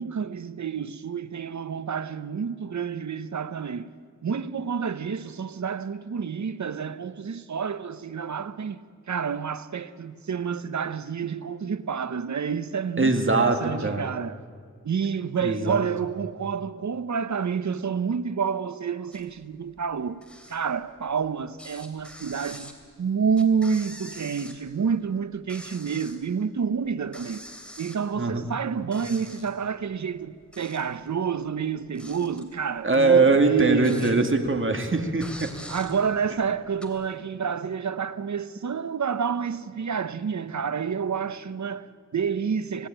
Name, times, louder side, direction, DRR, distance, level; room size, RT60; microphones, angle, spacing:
voice 1, 0.0-3.9 4.2-14.4 14.8-20.2 20.5-22.7 23.0-27.4 27.8-34.4 35.7-42.9, right 6 dB, 75° right, 0.8 m, -29 dB
voice 2, 13.0-14.1 15.4-15.8 28.2-28.4 32.8-35.5, right 3 dB, 45° right, 2.3 m, -22 dB
sound 1, 19.1-19.4 19.7-21.3 21.6-24.9 25.2-26.3 26.6-26.7 27.1-28.6 28.9-29.7 30.3-31.1 31.5-34.5 34.8-34.9 35.2-36.9, equal, 5° left, 3.0 m, -45 dB
25.5 x 18.5 x 9.0 m
wide cardioid pair, 75°, 29 cm